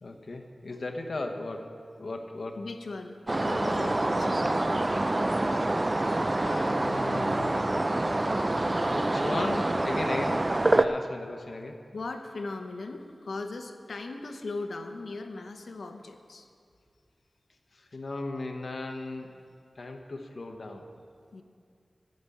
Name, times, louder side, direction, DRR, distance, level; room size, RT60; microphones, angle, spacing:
voice 1, 0.0-2.6 6.1-7.6 8.8-11.8 17.9-19.3 19.8-20.9, left 2 dB, 60° left, 4 dB, 1.1 m, -37 dB
voice 2, 2.6-4.5 5.5-5.6 6.4-6.5 7.5-7.7 11.9-16.5 19.5-19.6 21.3-21.4, left 3 dB, 80° left, 6 dB, 0.8 m, -39 dB
sound 1, 3.3-10.9, right 2 dB, 30° right, 0.4 m, -26 dB
14.5 x 5.3 x 8.4 m, 2.3 s
wide cardioid pair, 95°, 0 cm